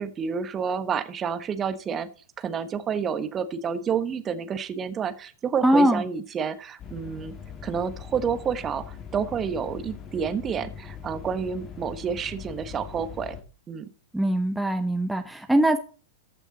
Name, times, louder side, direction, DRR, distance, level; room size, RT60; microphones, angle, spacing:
voice 1, 0.0-2.1 2.4-7.4 7.6-13.4 13.7-13.9, right 6 dB, 25° right, 11 dB, 1.0 m, -29 dB
voice 2, 5.6-6.0 14.1-15.8, right 1 dB, 5° right, 7 dB, 0.7 m, -21 dB
sound 1, 6.8-13.4, left 7 dB, 25° left, 2.0 m, -41 dB
14.5 x 5.9 x 3.9 m, 0.39 s
figure-of-eight pair, 95°, 0 cm